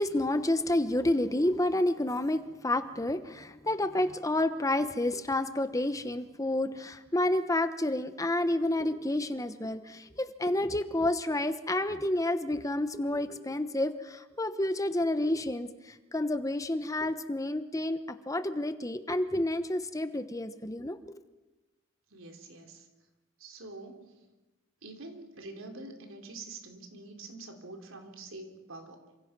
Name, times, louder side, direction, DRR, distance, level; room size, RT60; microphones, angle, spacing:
voice 1, 0.0-21.2, left 1 dB, 15° left, 10 dB, 1.0 m, -30 dB
voice 2, 22.1-22.9 23.4-24.2 24.8-29.0, right 2 dB, 80° right, 5 dB, 3.9 m, -46 dB
28.0 x 26.0 x 6.1 m, 1.1 s
head